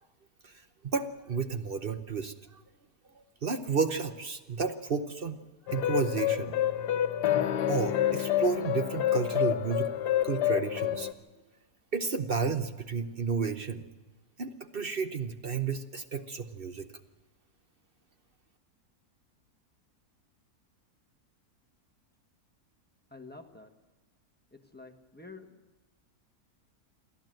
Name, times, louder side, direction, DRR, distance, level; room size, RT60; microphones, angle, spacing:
voice 1, 0.9-2.6 3.1-5.4 5.7-6.5 7.7-9.9 10.2-11.1 11.9-13.8 14.4-16.9, right 5 dB, 45° right, 8 dB, 0.9 m, -32 dB
sound 1, 5.7-11.1, left 11 dB, 90° left, 1.5 m, -28 dB
voice 2, 23.1-23.7 24.5-25.6, left 3 dB, 5° left, 5 dB, 1.2 m, -49 dB
28.5 x 12.0 x 7.8 m, 1.2 s
omnidirectional pair, 1.7 m